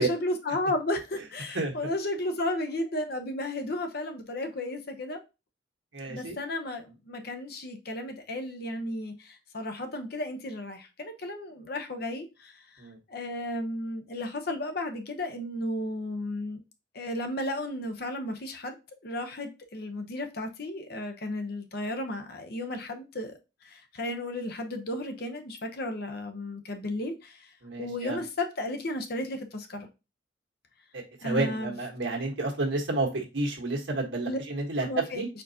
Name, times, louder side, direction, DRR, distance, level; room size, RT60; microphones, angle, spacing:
voice 1, 0.0-5.2 6.1-12.5 13.1-16.6 16.9-18.7 19.0-23.3 23.6-27.5 27.8-29.9 31.2-31.7 34.2-34.4 34.8-35.2, left 1 dB, 55° left, 0.8 m, -33 dB
voice 2, 5.9-6.4 12.8-13.0 27.6-28.2 30.9-34.9 35.1-35.3, right 2 dB, 80° right, 1.4 m, -30 dB
4.4 x 3.9 x 2.8 m
head